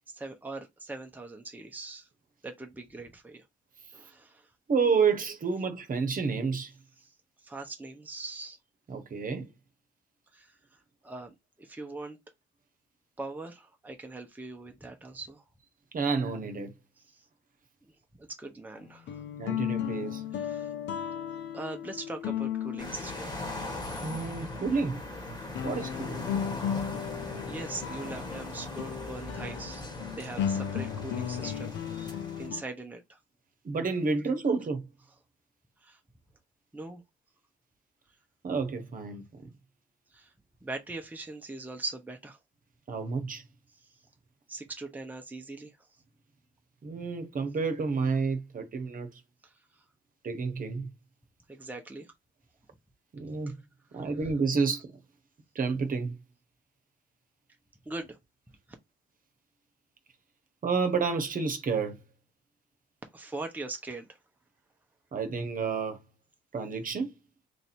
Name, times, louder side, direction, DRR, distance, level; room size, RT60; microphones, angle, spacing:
voice 1, 0.1-2.1 2.4-3.5 3.9-4.5 7.0-7.1 7.4-8.6 10.3-10.6 11.0-12.2 13.2-15.4 17.1-17.3 17.8-17.9 18.2-19.2 20.3-20.7 21.5-23.6 25.7-25.8 27.4-29.8 30.1-33.2 35.8-36.0 36.7-37.0 40.1-40.3 40.6-42.4 43.7-44.0 44.5-45.8 49.4-49.8 51.5-52.1 53.5-53.6 53.9-54.1 57.8-58.2 63.1-64.2, right 2 dB, 10° right, 0.8 m, -41 dB
voice 2, 4.7-6.7 8.9-9.5 15.9-16.7 19.4-20.2 24.0-25.0 25.6-26.3 33.6-34.9 38.4-39.4 42.9-43.4 46.8-49.2 50.2-50.9 53.1-53.5 53.9-54.9 55.5-56.2 60.6-62.0 65.1-66.0 66.5-67.1, right 5 dB, 45° right, 1.1 m, -30 dB
sound 1, 18.8-24.0 24.7-24.8 25.5-32.6, left 9 dB, 65° left, 0.7 m, -35 dB
sound 2, 22.8-32.5, left 2 dB, 20° left, 1.7 m, -40 dB
3.2 x 2.7 x 4.3 m
cardioid pair, 90°, 20 cm